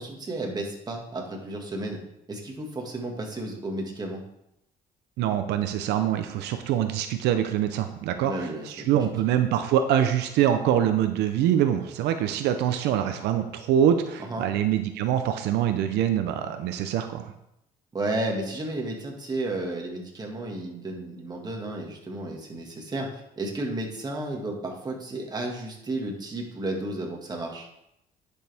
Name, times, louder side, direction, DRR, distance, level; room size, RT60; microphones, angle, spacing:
voice 1, 0.0-2.0 2.3-4.2 8.2-9.1 14.3-14.5 17.9-27.7, right 2 dB, 25° right, 0 dB, 1.9 m, -33 dB
voice 2, 5.2-17.3, right 10 dB, 85° right, 8 dB, 0.7 m, -24 dB
10.5 x 6.4 x 3.5 m, 0.82 s
cardioid pair, 110°, 17 cm